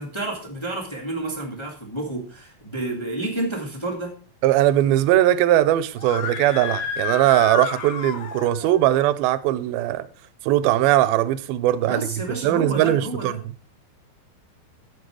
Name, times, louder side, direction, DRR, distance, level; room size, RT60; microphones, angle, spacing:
voice 1, 0.0-4.1 11.8-13.4, right 2 dB, 10° left, 2.0 m, -30 dB
voice 2, 4.4-10.1 10.4-12.1 12.4-13.3, right 13 dB, 85° right, 2.5 m, -20 dB
Screaming, 5.9-8.7, left 6 dB, 75° left, 1.2 m, -30 dB
15.5 x 6.0 x 4.7 m
omnidirectional pair, 4.2 m